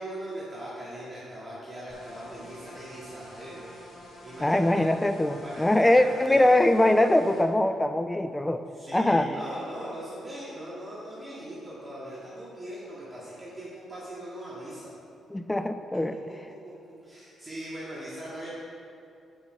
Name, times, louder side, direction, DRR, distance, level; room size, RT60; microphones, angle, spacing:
voice 1, 0.0-3.7 4.0-4.6 5.4-6.4 8.7-14.9 16.6-18.5, right 1 dB, 20° right, -9 dB, 1.8 m, -40 dB
sound 1, 1.9-7.4, left 1 dB, 60° left, 1.9 m, -48 dB
voice 2, 4.4-8.6 8.9-9.3 15.3-16.2, left 1 dB, 15° left, 10 dB, 0.3 m, -22 dB
7.0 x 5.5 x 5.4 m, 2.6 s
cardioid pair, 85°, 0 cm